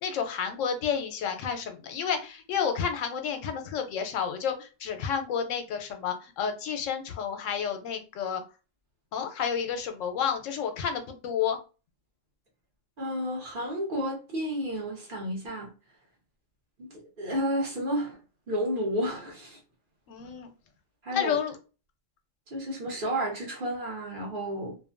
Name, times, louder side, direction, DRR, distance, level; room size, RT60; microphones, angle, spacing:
voice 1, 0.0-8.4 9.1-11.6 20.1-20.5 21.1-21.6, left 7 dB, 85° left, 1.0 m, -30 dB
voice 2, 13.0-15.7 16.8-18.2 18.5-19.6 21.0-21.4 22.5-24.8, equal, 50° right, 1.0 m, -31 dB
2.6 x 2.2 x 2.4 m
omnidirectional pair, 1.3 m